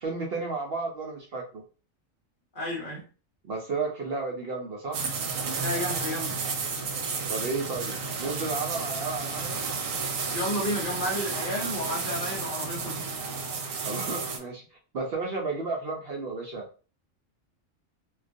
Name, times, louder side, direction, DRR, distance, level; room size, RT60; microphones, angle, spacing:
voice 1, 0.0-1.6 3.4-5.0 7.3-9.6 13.8-14.6 14.9-16.6, right 3 dB, 60° right, -1 dB, 0.7 m, -32 dB
voice 2, 2.5-3.0 5.6-6.4 10.3-13.0, left 1 dB, 50° left, -2 dB, 0.8 m, -31 dB
sound 1, 4.9-14.4, right 4 dB, 90° right, 1.0 m, -32 dB
2.3 x 2.2 x 2.5 m, 0.36 s
omnidirectional pair, 1.3 m